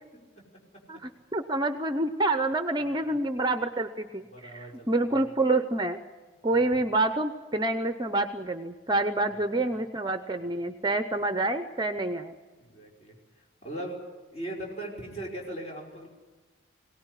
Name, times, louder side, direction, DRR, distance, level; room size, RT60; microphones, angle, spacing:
voice 1, 0.9-6.0 6.4-12.3, right 2 dB, 20° right, 9 dB, 0.7 m, -27 dB
voice 2, 2.8-3.1 4.3-5.2 6.5-6.8 9.3-9.7 12.5-14.0 14.3-16.1, right 1 dB, 35° left, -1 dB, 5.5 m, -40 dB
22.5 x 18.0 x 10.0 m, 1.3 s
head